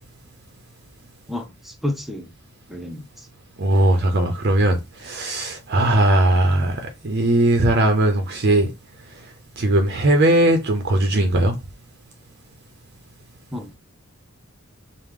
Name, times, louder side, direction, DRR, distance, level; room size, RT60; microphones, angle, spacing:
voice 1, 1.3-2.3 2.7-3.3 13.5-13.7, left 1 dB, ahead, 0.5 m, -30 dB
voice 2, 3.6-8.7 9.6-11.6, right 1 dB, 50° right, 0.6 m, -19 dB
4.8 x 2.1 x 3.6 m
head